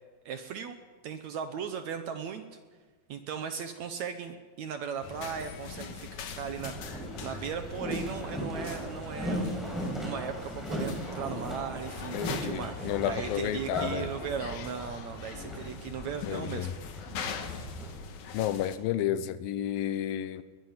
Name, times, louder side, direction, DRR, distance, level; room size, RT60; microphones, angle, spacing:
voice 1, 0.3-2.6 3.1-6.8 7.2-16.7, right 7 dB, 65° right, 8 dB, 1.9 m, -37 dB
sound 1, 5.0-18.8, left 5 dB, 60° left, 2.5 m, -42 dB
Boat Water vehicle, 6.5-17.9, equal, ahead, 5.9 m, -38 dB
voice 2, 12.1-14.1 16.3-16.7 18.3-20.4, left 11 dB, 80° left, 13 dB, 2.6 m, -31 dB
21.5 x 21.0 x 5.8 m, 1.4 s
omnidirectional pair, 4.2 m